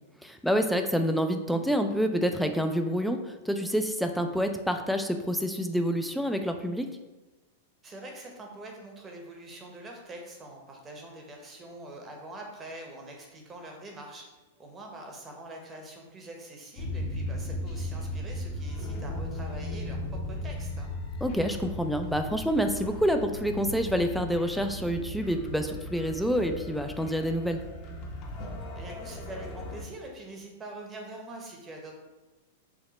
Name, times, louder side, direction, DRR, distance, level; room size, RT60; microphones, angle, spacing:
voice 1, 0.2-6.9 21.2-27.6, equal, ahead, 5 dB, 0.3 m, -27 dB
voice 2, 7.8-14.2 14.6-20.0 20.3-20.9 28.7-31.9, right 2 dB, 20° right, 1 dB, 0.8 m, -44 dB
sound 1, 16.8-29.8, left 1 dB, 40° left, 0.7 m, -37 dB
4.9 x 2.1 x 4.0 m, 1.1 s
supercardioid pair, 140°, 0 cm